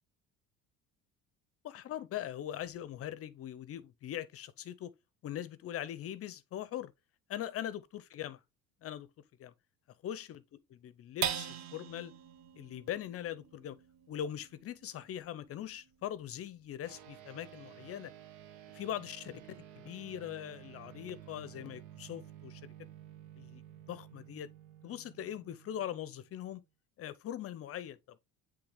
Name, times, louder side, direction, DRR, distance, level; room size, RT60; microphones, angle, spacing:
voice 1, 1.6-4.9 5.2-6.9 7.3-8.4 8.8-9.1 9.4-9.5 10.0-10.4 10.7-12.1 12.6-13.8 14.1-18.1 18.7-22.6 23.4-23.6 23.9-24.5 24.8-26.6 27.0-28.2, left 11 dB, 45° left, 0.6 m, -41 dB
sound 1, 11.2-17.9 18.4-18.5 18.9-19.4, right 8 dB, 60° right, 1.4 m, -43 dB
sound 2, 16.8-26.6, right 12 dB, 80° right, 1.4 m, -53 dB
9.7 x 3.3 x 3.5 m
supercardioid pair, 100°, 31 cm